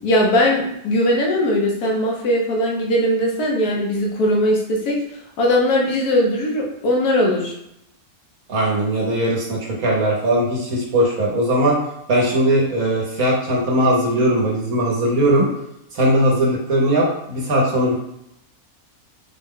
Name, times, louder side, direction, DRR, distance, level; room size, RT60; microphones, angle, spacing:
voice 1, 0.0-5.0 5.4-7.5, left 1 dB, 85° left, -2 dB, 1.4 m, -19 dB
voice 2, 8.5-11.8 12.1-15.5 15.9-17.9, right 1 dB, 70° right, -3 dB, 1.3 m, -19 dB
4.4 x 2.2 x 3.6 m, 0.80 s
omnidirectional pair, 1.6 m